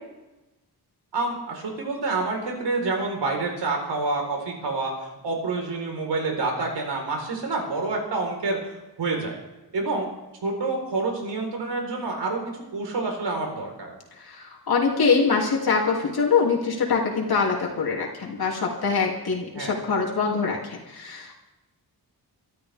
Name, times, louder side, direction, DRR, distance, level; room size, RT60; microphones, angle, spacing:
voice 1, 1.1-9.4 9.7-10.1 10.4-13.9 19.5-19.7, right 3 dB, 85° right, 1 dB, 4.3 m, -28 dB
voice 2, 14.2-21.5, left 5 dB, 60° left, -2 dB, 2.8 m, -24 dB
25.0 x 12.5 x 3.5 m, 1.0 s
wide cardioid pair, 140°, 41 cm